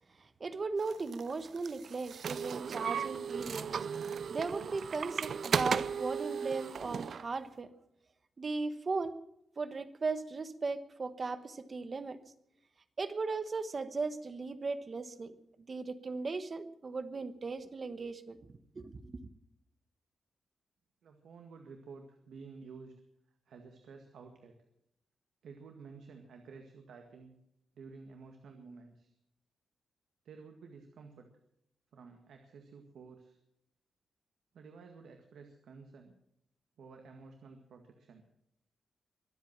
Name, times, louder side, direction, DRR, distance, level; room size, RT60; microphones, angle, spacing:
voice 1, 0.2-3.7 4.3-7.7 8.4-9.2 9.6-12.2 13.0-15.3 15.7-18.4 18.8-19.2, right 4 dB, 35° right, 12 dB, 1.1 m, -37 dB
sound 1, 0.9-7.2, right 7 dB, 55° right, 0.6 m, -36 dB
voice 2, 21.0-23.0 23.5-24.5 25.4-27.3 27.7-29.1 30.2-31.3 31.9-33.4 34.5-36.1 36.8-38.2, right 4 dB, 85° right, 4 dB, 1.9 m, -52 dB
23.5 x 8.3 x 7.4 m, 0.78 s
wide cardioid pair, 165°, 0 cm